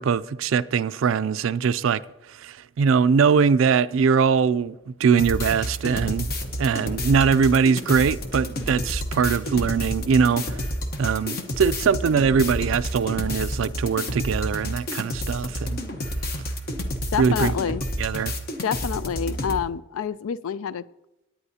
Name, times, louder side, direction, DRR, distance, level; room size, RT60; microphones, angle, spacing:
voice 1, 0.0-2.0 2.4-6.3 6.6-10.6 11.0-15.8 17.2-17.5 18.0-18.3, right 6 dB, 70° right, 0.4 m, -21 dB
sound 1, 5.2-19.6, equal, 50° left, 1.1 m, -30 dB
voice 2, 17.1-17.9 18.6-20.9, left 7 dB, 90° left, 0.4 m, -27 dB
17.5 x 9.9 x 2.8 m
head